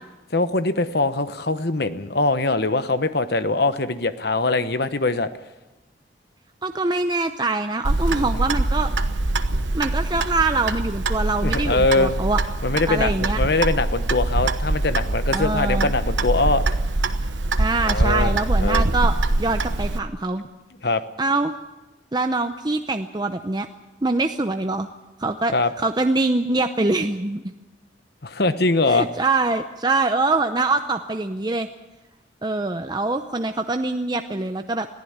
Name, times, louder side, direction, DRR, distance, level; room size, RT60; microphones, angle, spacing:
voice 1, 0.3-5.3 8.1-8.4 11.4-12.2 12.6-16.6 17.8-18.3 18.6-18.9 20.8-21.0 25.5-25.7 28.2-29.1, left 3 dB, 55° left, 11 dB, 1.1 m, -22 dB
voice 2, 6.6-8.9 9.7-12.4 12.9-13.4 15.3-15.9 17.6-19.1 19.4-20.4 21.2-21.5 22.1-23.7 24.0-24.9 25.2-27.4 28.8-31.7 32.4-34.9, right 3 dB, 20° right, 7 dB, 0.7 m, -24 dB
Clock, 7.8-20.0, right 2 dB, 80° right, 1.1 m, -23 dB
21.5 x 15.0 x 8.8 m, 1.1 s
head